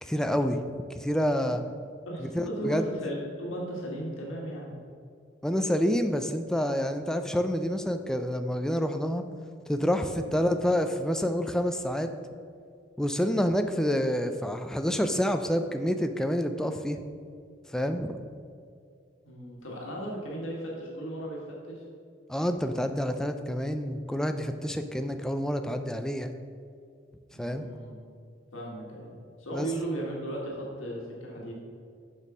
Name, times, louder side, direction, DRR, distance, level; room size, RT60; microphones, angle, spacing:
voice 1, 0.0-0.6 0.9-1.6 2.2-2.9 5.4-9.2 9.7-12.1 13.0-17.0 17.7-18.2 22.3-26.3 27.4-27.7 29.5-29.7, equal, 5° left, 7 dB, 0.3 m, -28 dB
voice 2, 2.0-4.7 10.1-10.4 19.2-21.8 27.3-27.9 28.5-31.5, right 1 dB, 85° left, -3 dB, 1.5 m, -36 dB
6.5 x 5.4 x 6.0 m, 2.3 s
head